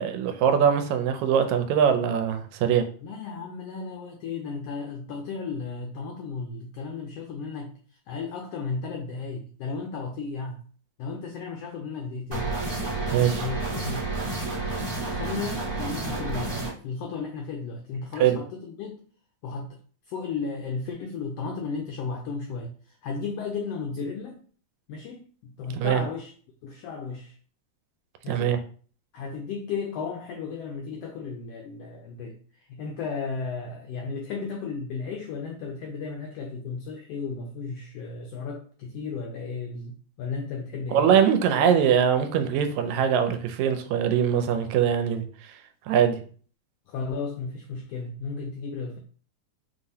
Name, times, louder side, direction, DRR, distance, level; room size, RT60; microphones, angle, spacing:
voice 1, 0.0-2.9 13.1-13.4 18.2-18.4 25.8-26.0 28.3-28.6 40.9-45.3 45.9-46.2, right 8 dB, 80° right, 8 dB, 1.9 m, -22 dB
voice 2, 3.0-7.7 8.1-10.6 11.0-12.5 13.3-14.1 14.6-19.1 19.4-19.8 20.1-24.4 24.9-26.3 26.6-27.3 28.2-28.7 29.1-41.1 46.9-49.0, left 4 dB, 85° left, 2 dB, 1.4 m, -34 dB
sound 1, 12.3-16.7, right 3 dB, 20° right, 0.6 m, -30 dB
5.3 x 2.9 x 2.7 m, 0.43 s
omnidirectional pair, 3.3 m